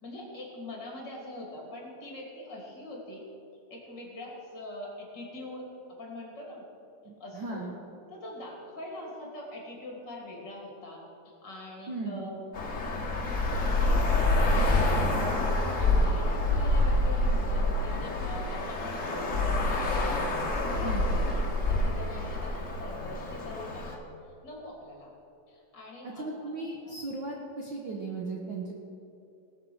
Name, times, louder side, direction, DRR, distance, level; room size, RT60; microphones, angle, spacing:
voice 1, 0.0-3.3 3.7-5.7 6.0-6.7 7.2-7.6 8.1-12.4 13.5-15.0 15.3-24.0 24.4-25.1 25.5-26.9, left 1 dB, 30° left, -2 dB, 3.0 m, -43 dB
voice 2, 7.0-7.7 11.9-12.3 20.8-21.1 26.0-28.7, right 3 dB, 75° right, -1 dB, 1.0 m, -36 dB
Traffic noise roadway noise, 12.5-24.0, left 2 dB, 50° left, 0.9 m, -27 dB
19.5 x 7.6 x 6.3 m, 2.9 s
omnidirectional pair, 4.1 m